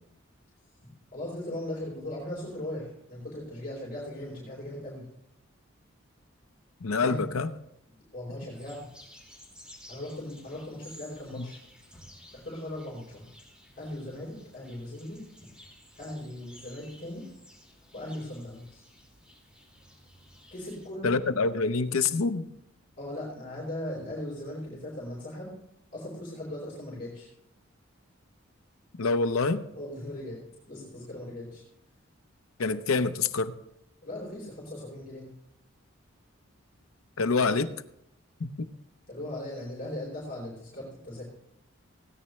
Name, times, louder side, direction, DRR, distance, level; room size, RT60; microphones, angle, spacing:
voice 1, 1.1-5.1 7.0-7.2 8.1-8.9 9.9-11.6 12.3-13.2 13.8-15.2 16.0-17.2 17.9-18.8 20.5-21.2 23.0-25.5 25.9-27.3 29.7-30.4 30.7-31.6 34.0-35.3 39.1-41.2, left 1 dB, 40° left, -5 dB, 4.4 m, -38 dB
voice 2, 6.8-7.5 11.4-11.5 21.0-22.5 29.0-29.6 32.6-33.5 37.2-37.7 38.4-38.7, left 4 dB, 80° left, 10 dB, 0.7 m, -26 dB
sound 1, 8.5-20.9, left 1 dB, 5° right, 3.0 m, -54 dB
17.0 x 9.9 x 3.2 m, 0.78 s
head